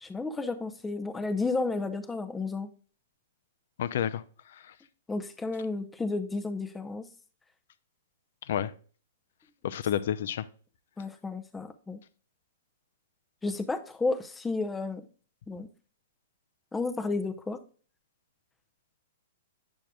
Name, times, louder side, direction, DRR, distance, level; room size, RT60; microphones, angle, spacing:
voice 1, 0.0-2.7 5.1-7.1 11.0-12.0 13.4-15.0 15.5-15.7 16.7-17.6, left 3 dB, 10° left, 0.6 m, -32 dB
voice 2, 3.8-4.2 8.5-8.7 9.6-10.5, left 10 dB, 65° left, 0.5 m, -29 dB
8.7 x 6.3 x 2.3 m
hypercardioid pair, 145°, 0 cm